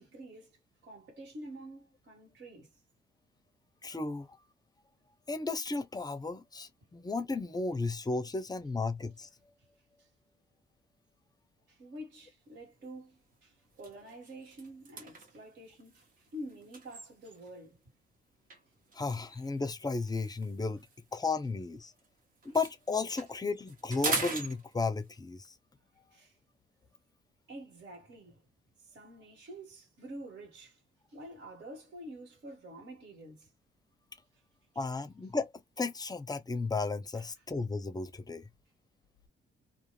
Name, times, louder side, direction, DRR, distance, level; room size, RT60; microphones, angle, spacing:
voice 1, 0.0-2.7 10.0-10.1 11.7-17.8 26.1-26.4 27.5-28.5 28.8-30.8 31.1-33.5 37.1-37.3, right 1 dB, 60° right, 1.7 m, -48 dB
voice 2, 3.8-4.3 5.3-9.3 18.9-20.8 21.1-21.9 22.5-25.5 34.8-35.5 35.8-38.4, left 3 dB, 20° left, 0.5 m, -34 dB
sound 1, 12.5-12.8 13.2-13.3 13.7-17.6 18.5-22.1 22.3-25.2, right 3 dB, 45° right, 1.1 m, -41 dB
2.4 x 2.3 x 3.1 m
cardioid pair, 90°, 20 cm